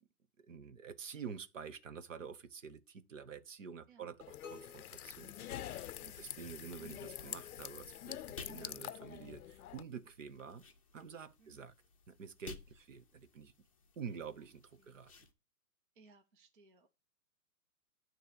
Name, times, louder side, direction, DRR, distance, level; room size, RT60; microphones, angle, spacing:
voice 1, 0.4-10.6 10.9-11.7 12.1-13.5 14.0-15.1, right 6 dB, 55° right, 0.9 m, -48 dB
sound 1, 4.2-9.8, left 11 dB, 70° left, 0.5 m, -46 dB
sound 2, 4.4-6.3, left 3 dB, 5° right, 1.1 m, -58 dB
sound 3, 5.2-15.3, left 4 dB, 20° left, 0.6 m, -57 dB
voice 2, 14.0-14.5 14.8-15.0 15.9-16.9, right 3 dB, 35° right, 0.6 m, -65 dB
9.1 x 3.1 x 6.6 m
hypercardioid pair, 170°, 47 cm